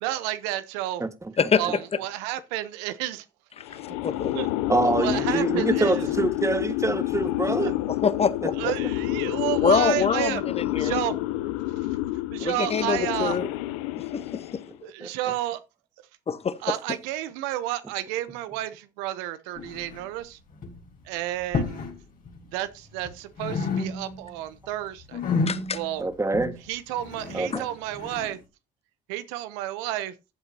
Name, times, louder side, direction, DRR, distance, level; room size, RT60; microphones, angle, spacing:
voice 1, 0.0-1.0 1.6-3.2 3.7-3.8 4.3-4.5 4.7-6.0 7.6-7.7 8.6-10.4 10.8-11.2 11.8-11.9 12.3-13.4 14.8-15.6 16.6-20.4 21.0-21.8 22.5-25.2 25.7-26.1 26.7-28.4 29.1-30.1, right 14 dB, 80° right, 0.8 m, -31 dB
sound 1, 3.6-14.8, left 16 dB, 85° left, 0.6 m, -28 dB
voice 2, 4.0-4.5 7.9-8.5 9.6-11.0 12.4-13.5 14.1-14.6 16.3-16.6 25.5-25.8, left 6 dB, 35° left, 1.1 m, -25 dB
voice 3, 4.7-7.7 15.0-15.1 26.0-26.6 27.3-27.6, right 2 dB, 15° right, 1.6 m, -25 dB
sound 2, 19.6-20.3 20.5-20.9 21.4-22.0 22.3-23.1 23.4-24.3 24.6-28.4, left 4 dB, 55° left, 3.9 m, -31 dB
14.5 x 8.0 x 2.8 m
hypercardioid pair, 60°, 17 cm